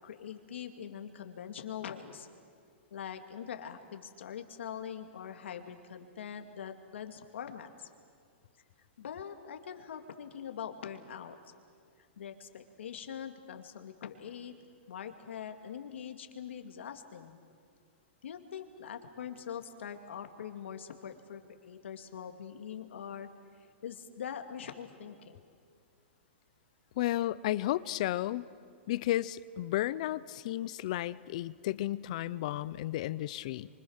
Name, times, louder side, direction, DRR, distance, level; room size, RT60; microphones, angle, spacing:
voice 1, 0.0-2.3 2.9-7.9 9.0-11.4 12.2-14.5 14.9-17.4 18.2-23.3 23.8-25.4, left 8 dB, 70° left, 6 dB, 2.3 m, -43 dB
voice 2, 27.0-28.4 28.9-33.7, left 14 dB, 35° left, 17 dB, 0.5 m, -33 dB
28.5 x 25.0 x 6.5 m, 2.2 s
hypercardioid pair, 180°, 7 cm